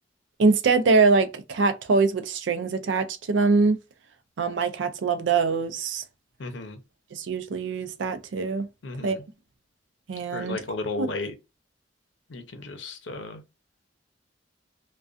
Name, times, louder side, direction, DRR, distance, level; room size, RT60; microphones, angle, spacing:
voice 1, 0.4-3.8 4.4-6.0 7.1-8.7 9.0-9.2 10.1-10.6 11.0-11.1, right 4 dB, 80° right, 0.4 m, -23 dB
voice 2, 6.4-6.8 8.8-9.2 10.3-11.4 12.3-13.4, left 2 dB, 75° left, 0.6 m, -34 dB
2.4 x 2.2 x 2.4 m
head